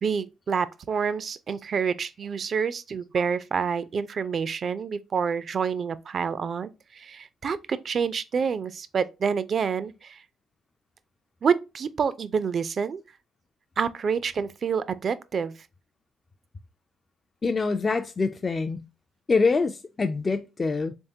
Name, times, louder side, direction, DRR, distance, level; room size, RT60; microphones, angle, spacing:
voice 1, 0.0-10.2 11.4-13.0 13.8-15.5, right 6 dB, 50° right, 0.4 m, -28 dB
voice 2, 17.4-18.8 19.3-20.9, left 4 dB, 30° left, 0.3 m, -25 dB
3.5 x 3.4 x 2.7 m
cardioid pair, 90°, 0 cm